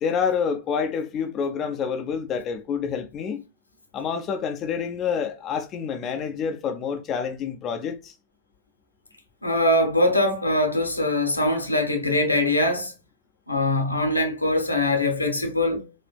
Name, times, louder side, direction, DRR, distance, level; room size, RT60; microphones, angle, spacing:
voice 1, 0.0-3.4 3.9-8.1, left 6 dB, 30° left, 0.5 m, -28 dB
voice 2, 9.4-12.9 13.5-15.9, left 1 dB, 85° left, 0.8 m, -22 dB
4.1 x 2.5 x 2.2 m
figure-of-eight pair, 90°, 0 cm